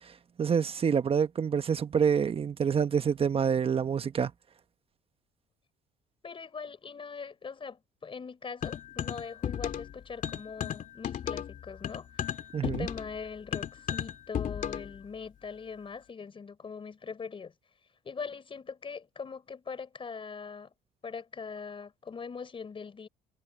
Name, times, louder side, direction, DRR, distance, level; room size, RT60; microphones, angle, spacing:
voice 1, 0.4-4.3 12.5-12.9, right 7 dB, 35° right, 1.2 m, -27 dB
voice 2, 6.2-12.3 12.6-17.5 18.0-20.7 21.0-23.1, left 5 dB, 30° left, 4.2 m, -42 dB
sound 1, 8.6-9.9 10.2-15.0, left 9 dB, 50° left, 2.7 m, -35 dB
cardioid pair, 110°, 17 cm